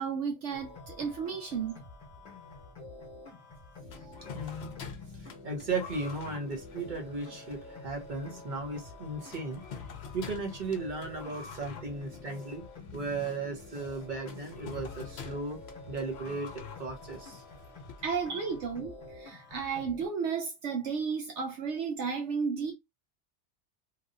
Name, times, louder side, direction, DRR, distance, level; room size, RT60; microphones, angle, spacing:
voice 1, 0.0-1.8 4.0-4.2 18.0-22.7, right 6 dB, 75° right, 0.9 m, -33 dB
sound 1, 0.5-20.1, left 3 dB, 45° left, 1.1 m, -48 dB
sound 2, 3.9-18.6, left 6 dB, 65° left, 0.9 m, -48 dB
voice 2, 4.2-4.9 5.2-9.6 10.1-12.6 12.9-15.6 15.9-17.4 18.3-18.4, right 3 dB, 45° right, 1.2 m, -36 dB
3.1 x 2.6 x 2.6 m
omnidirectional pair, 1.2 m